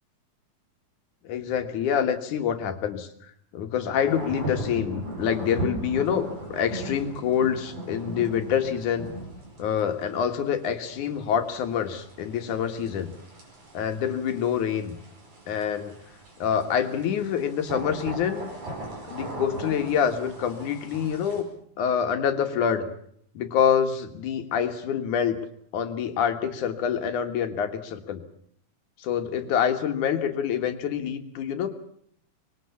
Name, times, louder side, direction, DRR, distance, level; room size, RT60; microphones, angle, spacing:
voice 1, 1.2-3.1 3.5-9.1 9.6-13.1 13.7-15.0 15.5-16.0 16.4-18.5 19.0-21.5 21.8-22.9 23.3-25.4 25.7-28.2 29.0-31.7, left 8 dB, 75° left, 7 dB, 3.0 m, -26 dB
sound 1, 4.0-21.4, right 1 dB, 65° right, 6.8 m, -38 dB
24.5 x 21.0 x 7.1 m, 0.66 s
omnidirectional pair, 3.6 m